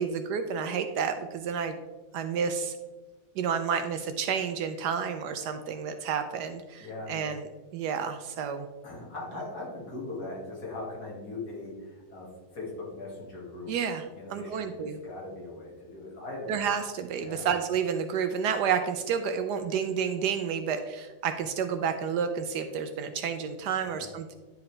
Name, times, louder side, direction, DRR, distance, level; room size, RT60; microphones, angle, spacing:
voice 1, 0.0-1.8 2.1-2.8 3.4-8.7 13.7-14.0 14.3-15.0 16.5-24.4, right 7 dB, 75° right, 7 dB, 1.1 m, -30 dB
voice 2, 6.8-7.3 8.8-13.7 14.1-16.5 17.2-17.5 23.8-24.1, left 2 dB, 60° left, -3 dB, 2.4 m, -40 dB
10.5 x 4.9 x 3.2 m, 1.2 s
omnidirectional pair, 2.0 m